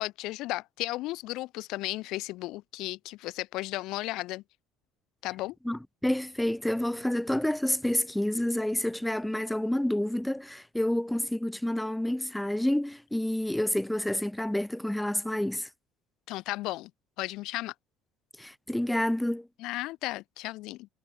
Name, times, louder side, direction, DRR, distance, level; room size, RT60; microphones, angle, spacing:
voice 1, 0.0-4.4 5.2-5.5 16.3-16.9 17.2-17.7 19.6-20.9, left 18 dB, 60° left, 1.7 m, -34 dB
voice 2, 5.6-15.7 18.4-19.5, left 1 dB, 5° left, 0.5 m, -29 dB
figure-of-eight pair, 60°, 0 cm